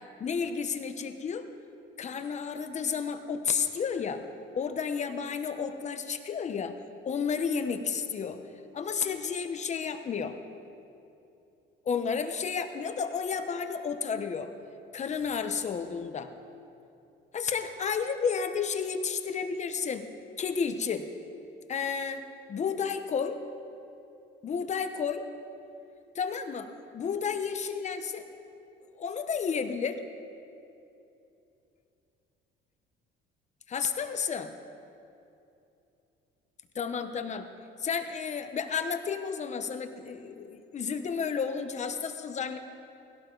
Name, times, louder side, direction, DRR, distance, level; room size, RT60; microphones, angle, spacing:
voice 1, 0.2-1.5 2.0-4.2 4.5-6.8 7.0-8.4 8.7-10.4 11.9-14.5 14.9-16.3 17.3-21.1 21.7-23.4 24.4-25.3 26.1-28.2 29.0-30.0 33.7-34.5 36.7-37.5 37.8-42.6, left 6 dB, 35° left, 8 dB, 0.9 m, -32 dB
19.5 x 17.0 x 4.0 m, 2.7 s
cardioid pair, 135°, 21 cm